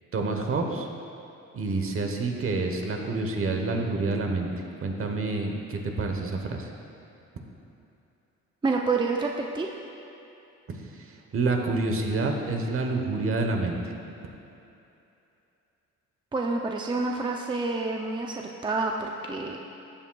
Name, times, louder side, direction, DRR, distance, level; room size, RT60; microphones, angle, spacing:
voice 1, 0.1-0.9 1.5-4.5 4.8-6.7 10.7-13.8, right 3 dB, 45° right, 3 dB, 1.1 m, -28 dB
voice 2, 8.6-9.7 16.3-19.6, right 3 dB, 15° right, 1 dB, 0.5 m, -28 dB
14.0 x 7.3 x 2.3 m, 2.8 s
cardioid pair, 90°, 30 cm